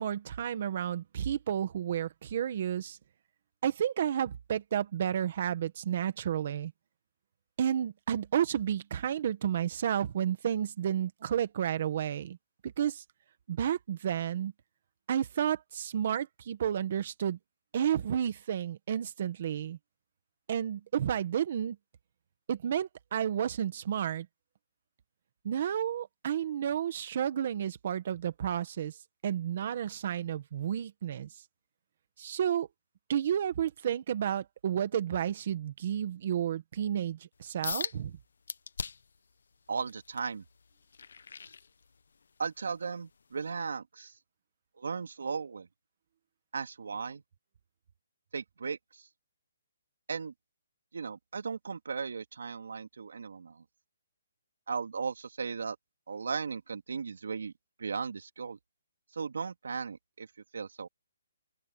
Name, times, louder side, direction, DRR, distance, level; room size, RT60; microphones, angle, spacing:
voice 1, 0.0-3.0 3.6-6.7 7.6-12.4 12.6-13.0 13.5-14.5 15.1-17.4 17.7-19.8 20.5-21.8 22.5-24.3 25.4-29.0 29.2-31.3 32.2-32.7 33.1-38.2, right 9 dB, 35° right, 1.7 m, -31 dB
sound 1, 37.6-38.0 38.5-39.2 39.7-42.2 42.7-43.0 43.5-43.6, left 5 dB, 65° left, 1.0 m, -39 dB
voice 2, 39.7-40.4 42.4-44.1 44.8-45.7 46.5-47.2 48.3-49.1 50.1-50.3 50.9-53.6 54.7-55.8 56.1-57.5 57.8-58.6 59.1-60.3 60.5-60.9, right 5 dB, 70° right, 2.6 m, -36 dB
hypercardioid pair, 175°, 0 cm